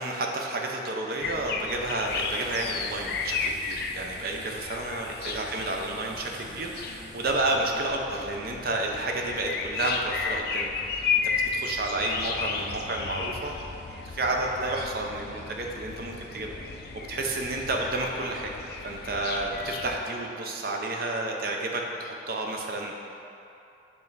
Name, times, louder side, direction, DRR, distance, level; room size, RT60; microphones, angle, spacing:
voice 1, 0.0-10.7 11.1-13.5 14.1-16.5 16.9-18.5 18.8-23.0, right 2 dB, 55° right, 1 dB, 0.7 m, -31 dB
sound 1, 1.2-20.0, left 5 dB, 55° left, 0.4 m, -34 dB
sound 2, 2.0-7.3, right 2 dB, 75° right, 1.1 m, -50 dB
7.0 x 3.2 x 5.4 m, 2.7 s
head